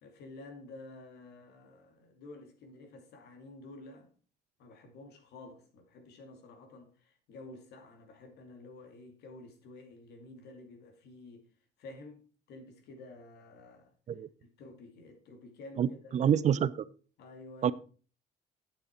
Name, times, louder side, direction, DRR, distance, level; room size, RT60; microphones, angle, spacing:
voice 1, 0.0-4.1 4.6-11.5 11.8-13.9 14.6-16.3 17.2-17.7, left 2 dB, 75° left, 2.4 m, -51 dB
voice 2, 15.8-16.7 17.6-17.7, right 9 dB, 45° right, 0.5 m, -27 dB
8.8 x 8.2 x 4.4 m
cardioid pair, 110°, 17 cm